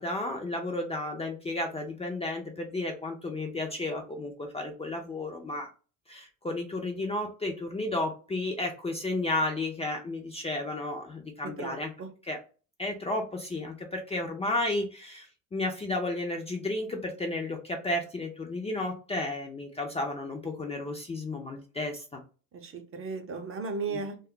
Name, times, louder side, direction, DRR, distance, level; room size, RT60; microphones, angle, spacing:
voice 1, 0.0-5.7 6.1-11.9 12.3-12.4 12.8-22.2 23.9-24.0, left 2 dB, 15° left, 0.4 m, -33 dB
voice 2, 11.4-12.1 22.5-24.2, right 4 dB, 35° right, 0.6 m, -36 dB
2.3 x 2.0 x 3.6 m
cardioid pair, 110°, 37 cm